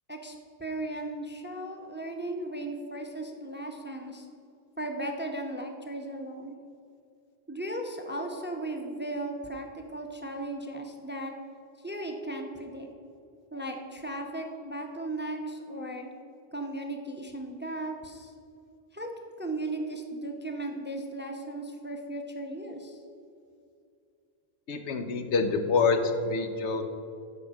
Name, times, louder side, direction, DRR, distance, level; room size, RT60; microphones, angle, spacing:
voice 1, 0.1-4.3 4.8-6.6 7.5-11.3 11.8-12.9 13.5-16.1 16.5-18.3 18.9-19.1 19.4-23.0, right 1 dB, 10° right, 3 dB, 0.6 m, -36 dB
voice 2, 24.7-26.8, left 4 dB, 75° left, 7 dB, 1.1 m, -26 dB
11.5 x 5.1 x 6.3 m, 2.5 s
omnidirectional pair, 1.2 m